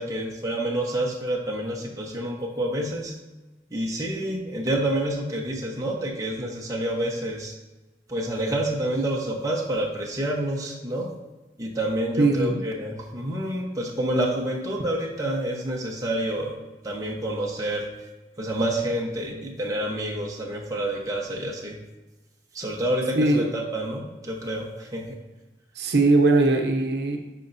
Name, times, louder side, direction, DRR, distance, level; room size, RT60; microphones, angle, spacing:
voice 1, 0.0-3.2 3.7-7.5 8.1-11.1 11.6-16.6 16.8-17.9 18.4-21.8 22.5-25.2, right 1 dB, 20° right, -2 dB, 1.1 m, -28 dB
voice 2, 12.2-12.7 23.1-23.5 25.7-27.2, right 2 dB, 75° right, 3 dB, 0.8 m, -20 dB
11.0 x 4.4 x 2.7 m, 1.2 s
head